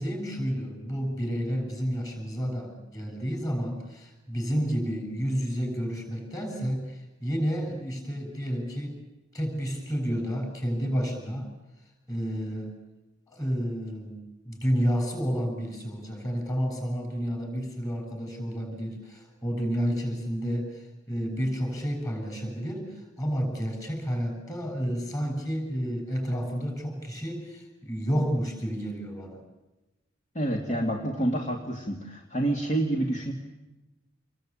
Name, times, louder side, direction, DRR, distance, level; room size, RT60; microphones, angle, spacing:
voice 1, 0.0-9.0 9.3-11.5 12.1-12.8 13.3-14.2 14.4-29.4 30.7-30.8, equal, 15° left, 4 dB, 7.5 m, -30 dB
voice 2, 30.3-33.3, right 1 dB, 35° left, 1 dB, 2.5 m, -28 dB
27.5 x 22.0 x 8.9 m, 1.0 s
head